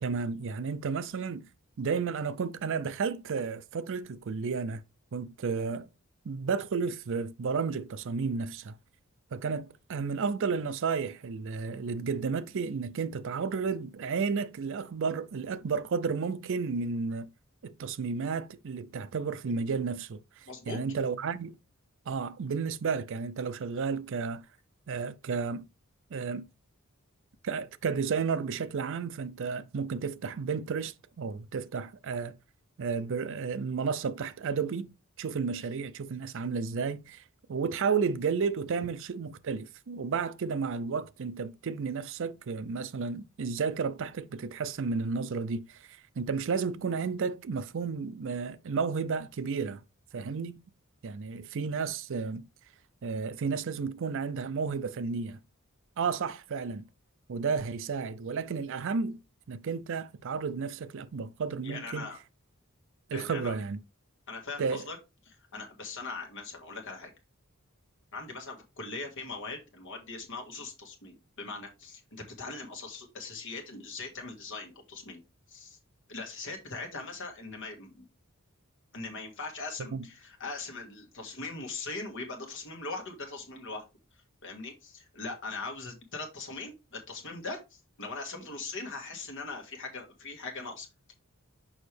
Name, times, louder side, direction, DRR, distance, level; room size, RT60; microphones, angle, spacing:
voice 1, 0.0-1.4 1.8-4.8 5.1-5.9 6.3-8.7 9.3-17.3 17.6-21.5 22.1-24.4 24.9-25.6 26.1-26.5 27.4-32.4 32.8-34.9 35.2-37.2 37.5-49.8 50.1-50.6 51.0-52.5 53.0-55.4 56.0-56.9 57.3-59.2 59.5-62.1 63.1-63.8 64.6-64.9 79.9-80.0, right 5 dB, 60° right, 0.5 m, -32 dB
voice 2, 20.5-20.8 61.6-62.2 63.1-63.5 64.3-65.0 65.3-67.1 68.1-75.2 75.5-75.8 76.1-78.0 78.9-83.8 84.4-91.1, left 3 dB, 60° left, 1.7 m, -40 dB
6.3 x 5.1 x 3.3 m
head